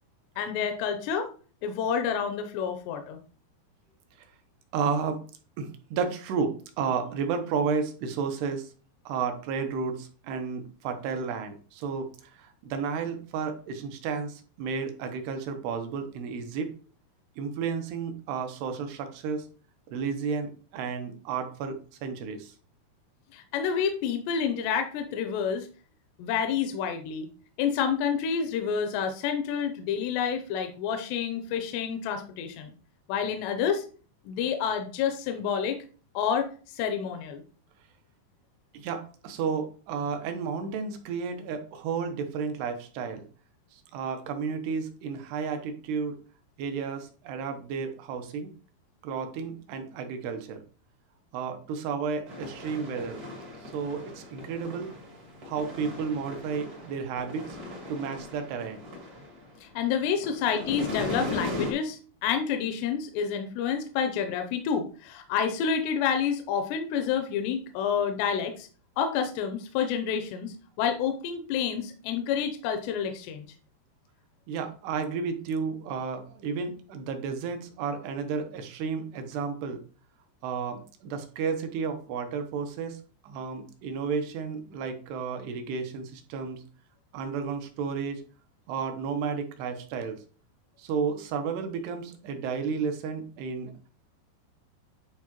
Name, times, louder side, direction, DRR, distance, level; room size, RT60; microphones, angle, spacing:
voice 1, 0.4-1.3 1.6-3.2 23.3-25.7 26.2-27.3 27.6-32.7 33.1-33.9 34.3-35.8 36.1-37.4 59.6-68.7 69.0-73.5, left 7 dB, 85° left, 6 dB, 2.9 m, -29 dB
voice 2, 4.7-5.2 5.6-8.7 9.1-16.7 17.4-19.4 19.9-22.5 38.7-43.2 43.7-46.2 46.6-48.5 49.0-50.6 51.3-53.2 53.7-54.9 55.5-57.6 57.9-58.8 74.5-79.8 80.4-83.0 83.2-86.6 87.1-88.2 88.7-90.2 90.8-93.7, right 5 dB, 80° right, 6 dB, 2.9 m, -32 dB
sound 1, 52.3-59.8 60.1-61.7, left 2 dB, 55° right, 1.0 m, -38 dB
11.0 x 4.6 x 3.0 m, 0.40 s
omnidirectional pair, 4.9 m